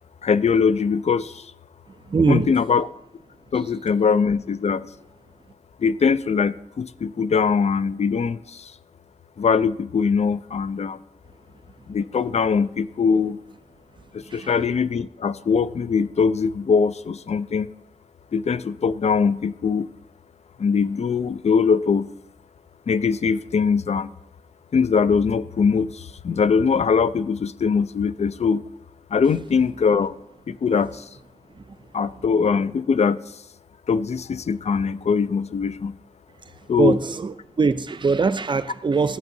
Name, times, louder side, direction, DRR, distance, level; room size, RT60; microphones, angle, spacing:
voice 1, 0.2-1.5 2.3-2.9 3.5-4.9 5.8-8.7 9.4-11.0 11.9-13.4 14.1-17.7 18.3-19.9 20.6-22.1 22.9-24.1 24.7-28.6 29.1-30.2 30.5-31.1 31.9-33.2 33.9-36.0 36.7-37.0, left 5 dB, 55° left, 15 dB, 0.4 m, -21 dB
voice 2, 2.1-2.5 14.3-14.4 36.8-39.2, right 4 dB, 35° right, 13 dB, 0.4 m, -21 dB
13.5 x 8.0 x 2.7 m, 0.80 s
wide cardioid pair, 85°, 14 cm